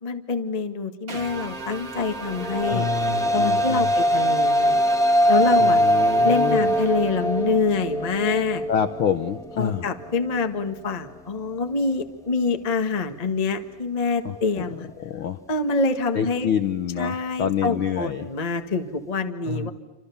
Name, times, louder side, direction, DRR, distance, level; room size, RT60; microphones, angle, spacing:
voice 1, 0.0-2.9 3.3-4.8 5.3-5.8 6.2-8.6 9.6-14.9 15.5-16.5 17.0-19.7, left 4 dB, 35° left, 7 dB, 0.6 m, -26 dB
sound 1, 1.1-7.6, right 3 dB, 25° right, 3.0 m, -36 dB
sound 2, 2.2-10.8, equal, ahead, 1.2 m, -22 dB
voice 2, 2.7-3.9 5.6-6.7 8.7-9.9 14.2-14.7 15.0-15.4 16.1-18.3 19.4-19.7, left 8 dB, 70° left, 9 dB, 1.2 m, -27 dB
28.5 x 27.0 x 7.1 m, 1.1 s
omnidirectional pair, 3.8 m